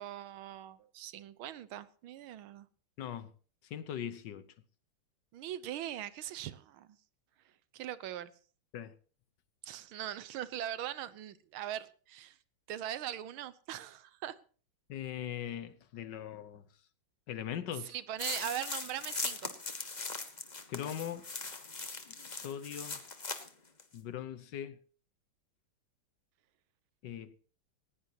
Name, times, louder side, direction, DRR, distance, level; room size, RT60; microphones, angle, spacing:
voice 1, 0.0-2.7 5.3-7.0 7.7-8.3 9.6-12.4 12.7-14.4 17.9-19.5, right 11 dB, 90° right, 1.7 m, -41 dB
voice 2, 3.0-3.3 3.6-4.5 8.7-8.9 14.9-16.6 17.3-17.9 20.7-21.3 22.1-23.0 23.9-24.8 27.0-27.4, left 10 dB, 65° left, 1.4 m, -40 dB
sound 1, 18.2-23.5 23.8-23.9, left 3 dB, 25° left, 1.1 m, -40 dB
19.0 x 16.0 x 2.9 m
omnidirectional pair, 2.2 m